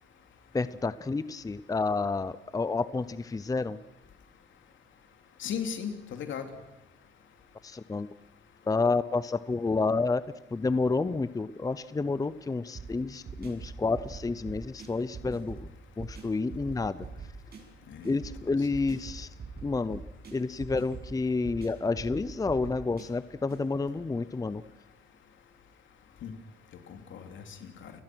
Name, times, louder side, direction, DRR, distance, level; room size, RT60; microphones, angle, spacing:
voice 1, 0.5-3.8 7.6-8.1 8.7-10.2 10.5-15.7 16.0-17.1 18.0-19.3 19.6-20.0 20.3-24.6, left 3 dB, 15° left, 15 dB, 0.7 m, -29 dB
voice 2, 5.4-6.5 17.9-18.2 26.2-26.3 26.9-27.9, left 7 dB, 75° left, 5 dB, 3.1 m, -37 dB
sound 1, 12.7-23.6, right 4 dB, 55° right, 7.0 m, -44 dB
29.5 x 18.0 x 6.3 m, 0.97 s
cardioid pair, 90°, 20 cm